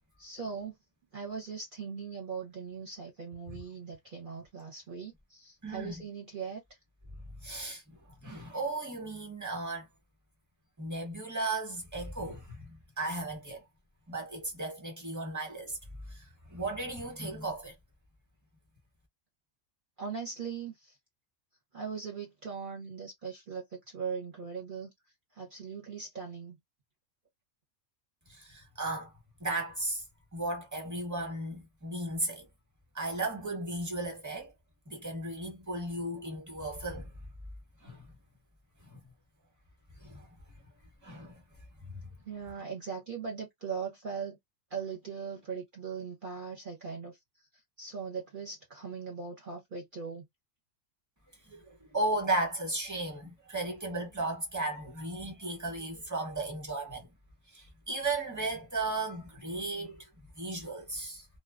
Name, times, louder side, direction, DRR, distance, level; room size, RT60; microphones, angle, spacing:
voice 1, 0.2-0.7 1.1-6.6 20.0-20.9 21.7-24.9 25.4-26.6 42.2-44.4 44.7-47.1 47.8-50.3, right 6 dB, 45° right, 0.8 m, -39 dB
voice 2, 5.6-6.0 7.4-9.9 10.8-13.6 14.1-15.8 16.1-17.7 28.3-29.1 29.4-30.0 30.3-32.5 32.9-34.5 34.9-37.1 37.8-38.1 38.8-39.0 40.0-40.3 41.0-41.4 41.9-42.0 51.4-57.1 57.5-60.1 60.4-61.3, right 2 dB, 15° right, 0.9 m, -35 dB
2.3 x 2.2 x 2.4 m
omnidirectional pair, 1.3 m